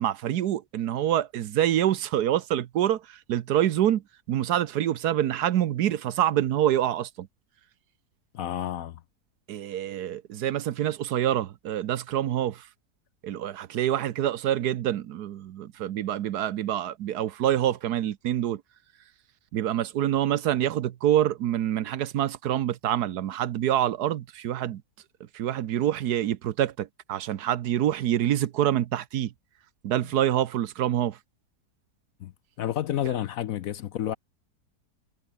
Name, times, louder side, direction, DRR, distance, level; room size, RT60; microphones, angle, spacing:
voice 1, 0.0-7.3 9.5-12.7 13.2-18.6 19.5-24.8 25.3-29.3 29.8-31.2, right 11 dB, 70° right, 1.3 m, -26 dB
voice 2, 8.3-9.0 32.2-32.3 32.6-34.2, left 11 dB, 65° left, 1.0 m, -30 dB
omnidirectional pair, 1.8 m